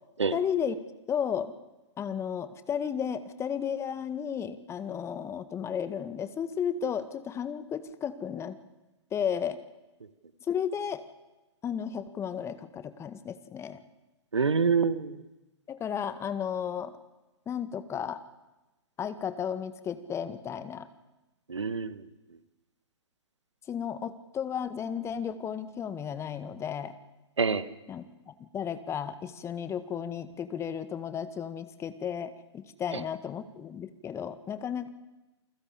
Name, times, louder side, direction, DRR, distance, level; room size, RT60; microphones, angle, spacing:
voice 1, 0.3-0.8 1.1-1.5 2.0-8.6 9.1-9.6 10.5-11.0 11.6-13.8 15.7-16.9 17.4-18.2 19.0-20.9 23.7-27.0 27.9-34.9, left 8 dB, 20° left, 12 dB, 1.7 m, -33 dB
voice 2, 14.3-15.1 21.5-22.0 27.4-27.6, right 5 dB, 75° right, 14 dB, 1.7 m, -26 dB
28.5 x 21.0 x 8.5 m, 1.0 s
figure-of-eight pair, 110°, 15 cm